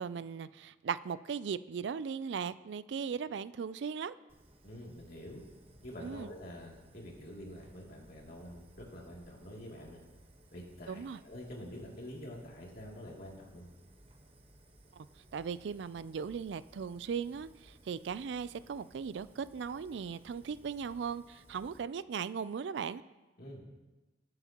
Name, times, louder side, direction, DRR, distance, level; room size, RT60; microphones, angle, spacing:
voice 1, 0.0-4.1 6.0-6.3 10.9-11.2 15.0-15.1 15.3-23.0, right 6 dB, 70° right, 16 dB, 0.4 m, -38 dB
Fire, 4.3-21.8, right 1 dB, 35° right, 1.2 m, -60 dB
voice 2, 4.6-5.4 5.8-10.0 10.5-13.7 23.4-23.7, equal, 55° left, -3 dB, 2.7 m, -47 dB
20.0 x 7.9 x 2.9 m, 1.1 s
head